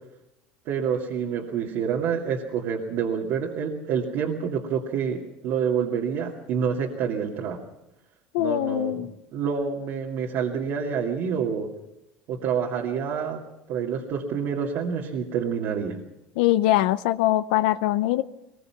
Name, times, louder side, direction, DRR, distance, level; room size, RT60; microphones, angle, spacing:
voice 1, 0.7-7.6 8.4-9.1 9.3-11.7 12.3-13.4 13.7-16.0, right 7 dB, 65° right, -1 dB, 2.3 m, -27 dB
voice 2, 8.3-9.1 16.4-18.2, left 15 dB, 85° left, 13 dB, 0.6 m, -22 dB
21.5 x 21.0 x 5.9 m, 0.90 s
supercardioid pair, 120°, 5 cm